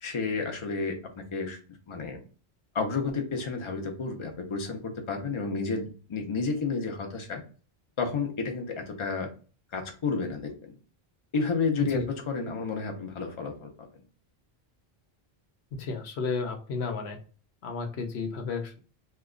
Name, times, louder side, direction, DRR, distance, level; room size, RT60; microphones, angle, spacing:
voice 1, 0.0-1.6 1.9-2.2 2.7-7.4 8.0-9.3 9.7-10.7 11.3-13.9, left 4 dB, 35° left, 3 dB, 0.6 m, -31 dB
voice 2, 15.7-17.2 17.6-18.8, left 4 dB, 90° left, 5 dB, 1.0 m, -32 dB
2.9 x 2.2 x 3.7 m, 0.38 s
omnidirectional pair, 1.1 m